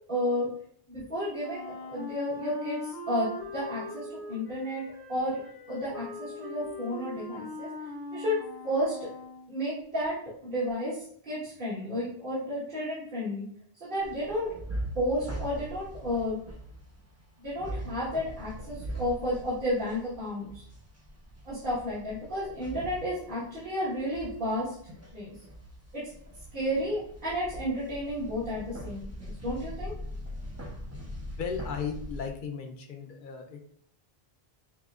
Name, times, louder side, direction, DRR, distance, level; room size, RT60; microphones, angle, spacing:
voice 1, 0.1-0.5 0.9-4.8 5.1-5.4 5.7-7.7 8.1-9.0 9.5-13.4 13.8-14.5 14.9-16.4 17.4-20.6 21.4-25.3 25.9-26.1 26.5-29.9, equal, 60° right, -9 dB, 1.5 m, -32 dB
Wind instrument woodwind instrument, 1.4-9.5, left 2 dB, 85° left, 1.2 m, -41 dB
sound 1, 14.0-32.3, equal, 20° right, 0.4 m, -41 dB
voice 2, 31.4-33.7, left 6 dB, 60° left, 4 dB, 0.7 m, -36 dB
5.7 x 2.8 x 2.4 m, 0.63 s
omnidirectional pair, 1.0 m